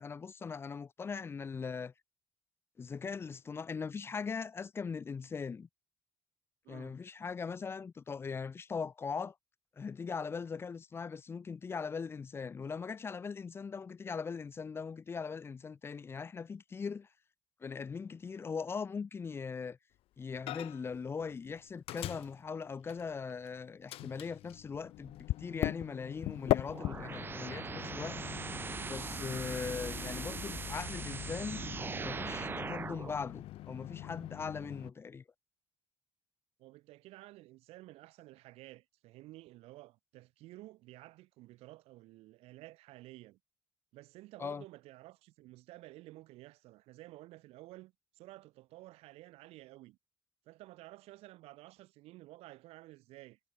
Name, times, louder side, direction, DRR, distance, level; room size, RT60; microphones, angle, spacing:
voice 1, 0.0-1.9 2.8-5.7 6.7-9.4 9.8-17.1 17.6-19.8 20.2-28.2 28.9-31.6 32.0-35.2 44.4-44.6, left 5 dB, 25° left, 0.8 m, -40 dB
voice 2, 6.6-7.0 36.6-43.4 43.9-50.0 50.4-53.4, right 18 dB, 90° right, 3.3 m, -53 dB
Microwave oven, 20.5-21.0 21.2-23.5 23.9-34.9, left 15 dB, 75° left, 1.8 m, -40 dB
sound 1, 26.7-33.1, right 5 dB, 20° right, 0.9 m, -40 dB
cardioid pair, 155°, 10 cm